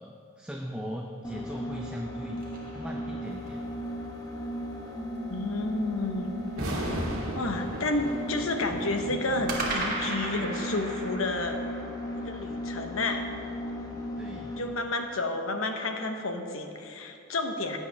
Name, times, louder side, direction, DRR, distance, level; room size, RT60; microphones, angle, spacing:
voice 1, 0.0-2.4 2.7-3.7 14.2-14.6, equal, 5° right, 0 dB, 0.5 m, -38 dB
sound 1, 1.2-14.8, equal, 15° left, 1.0 m, -36 dB
sound 2, 1.8-3.7 9.5-13.7, right 2 dB, 40° right, 1.7 m, -37 dB
voice 2, 5.3-6.3 7.3-11.6 12.2-13.2 14.6-17.8, left 2 dB, 70° left, 5 dB, 1.0 m, -30 dB
sound 3, 6.5-9.7, equal, 85° right, 2.0 m, -36 dB
16.0 x 8.7 x 3.4 m, 2.5 s
head